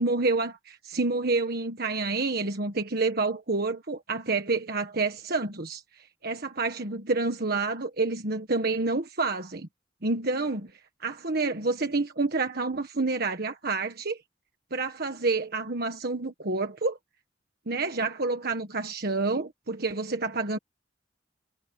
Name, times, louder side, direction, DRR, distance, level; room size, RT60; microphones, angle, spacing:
voice 1, 0.0-5.8 6.2-9.7 10.0-10.7 11.0-14.2 14.7-17.0 17.7-20.6, right 3 dB, 55° right, 1.5 m, -28 dB
head